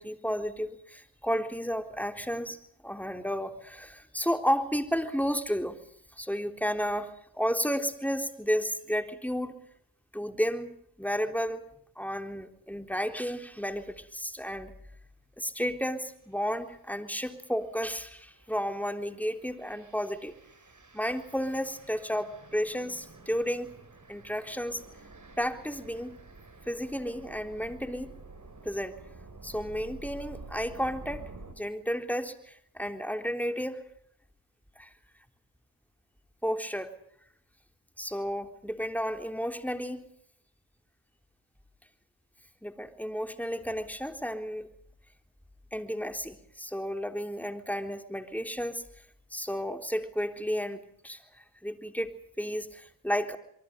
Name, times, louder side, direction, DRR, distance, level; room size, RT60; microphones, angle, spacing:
voice 1, 0.0-2.6 2.8-5.8 6.2-9.6 10.1-11.7 12.0-14.7 15.4-20.3 20.9-23.7 24.1-24.8 25.4-26.2 26.7-28.1 28.6-29.0 29.4-33.8 34.8-34.9 36.4-36.9 38.0-40.1 42.6-44.7 45.7-48.8 49.3-53.4, equal, 5° left, 7 dB, 3.7 m, -32 dB
sound 1, 16.3-16.5 17.1-31.5, right 3 dB, 35° right, 6.4 m, -50 dB
28.0 x 23.5 x 5.3 m, 0.66 s
cardioid pair, 55°, 50 cm